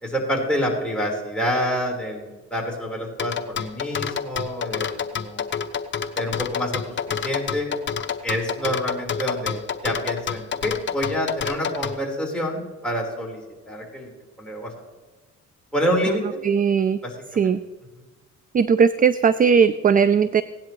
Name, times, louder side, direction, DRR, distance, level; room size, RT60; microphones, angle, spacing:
voice 1, 0.0-5.4 6.2-6.8 7.1-7.7 8.2-13.4 13.7-14.1 14.4-14.7 15.7-16.4 17.0-17.5, equal, 5° left, -3 dB, 4.1 m, -27 dB
sound 1, 3.2-12.0, left 7 dB, 40° left, 0.8 m, -28 dB
voice 2, 16.4-17.0 17.3-17.6 18.5-20.4, right 6 dB, 30° right, 15 dB, 0.4 m, -18 dB
17.0 x 10.5 x 3.1 m, 1.2 s
cardioid pair, 90°, 30 cm